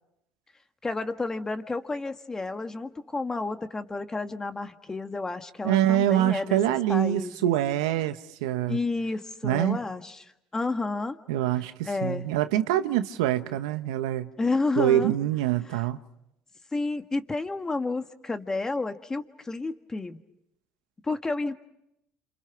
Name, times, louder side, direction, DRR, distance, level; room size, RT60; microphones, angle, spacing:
voice 1, 0.8-7.5 8.7-11.2 11.8-12.3 14.4-15.1 15.7-15.8 16.7-20.2 21.0-21.5, left 3 dB, 20° left, 1.6 m, -31 dB
voice 2, 5.6-8.8 9.4-9.8 11.3-14.3 14.8-16.0, right 12 dB, 90° right, 1.0 m, -25 dB
28.5 x 27.5 x 5.9 m
supercardioid pair, 80°, 3 cm